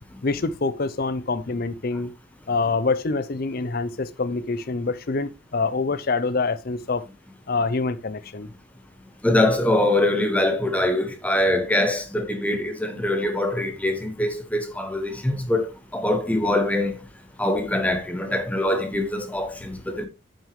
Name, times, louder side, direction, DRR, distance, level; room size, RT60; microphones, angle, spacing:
voice 1, 0.2-2.1 2.5-7.0 7.5-8.5, left 3 dB, 45° left, 0.6 m, -26 dB
voice 2, 9.2-15.7 15.9-17.0 17.4-20.1, left 1 dB, 5° left, 0.8 m, -23 dB
8.7 x 6.2 x 3.1 m
head